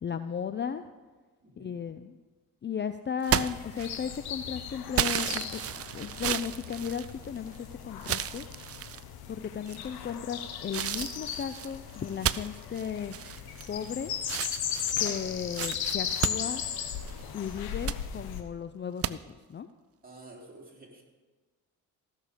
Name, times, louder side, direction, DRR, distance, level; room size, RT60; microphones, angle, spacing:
voice 1, 0.0-0.8 1.6-2.2 2.6-5.6 5.9-8.5 9.3-13.2 13.7-14.1 15.0-16.6 17.3-19.7, left 7 dB, 30° left, 10 dB, 0.5 m, -35 dB
voice 2, 1.4-1.8 20.0-21.0, right 2 dB, 25° right, -1 dB, 3.1 m, -50 dB
sound 1, 3.2-4.3 4.9-7.6 8.0-9.0 9.7-10.1 10.7-13.9 14.2-17.2 17.6-18.0 19.0-19.1, right 11 dB, 40° right, 0.4 m, -33 dB
sound 2, 3.3-18.4, left 8 dB, 75° left, 1.2 m, -37 dB
16.0 x 6.6 x 5.0 m, 1.3 s
supercardioid pair, 70°, 37 cm